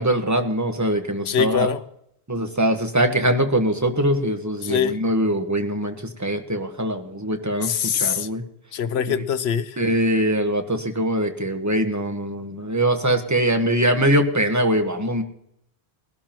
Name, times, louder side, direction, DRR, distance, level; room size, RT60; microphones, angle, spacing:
voice 1, 0.0-1.7 2.3-8.4 9.8-15.2, right 1 dB, 15° right, 6 dB, 1.2 m, -22 dB
voice 2, 1.3-1.8 4.6-5.0 7.6-8.3 8.7-9.8, left 8 dB, 75° left, 13 dB, 1.0 m, -23 dB
20.5 x 12.0 x 3.0 m, 0.74 s
omnidirectional pair, 1.1 m